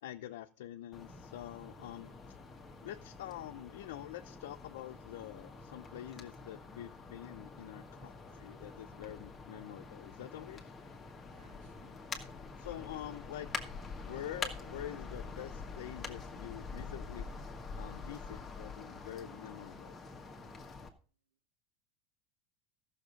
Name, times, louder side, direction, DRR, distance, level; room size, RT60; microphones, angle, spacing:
voice 1, 0.0-2.4 2.8-10.7 12.6-13.5 14.1-17.3 17.8-20.0, left 12 dB, 85° left, 5 dB, 0.7 m, -46 dB
sound 1, 0.9-20.9, left 4 dB, 15° left, 1.5 m, -46 dB
voice 2, 11.3-12.0, right 7 dB, 80° right, 5 dB, 2.2 m, -67 dB
14.0 x 6.6 x 5.2 m, 0.37 s
supercardioid pair, 160°, 0 cm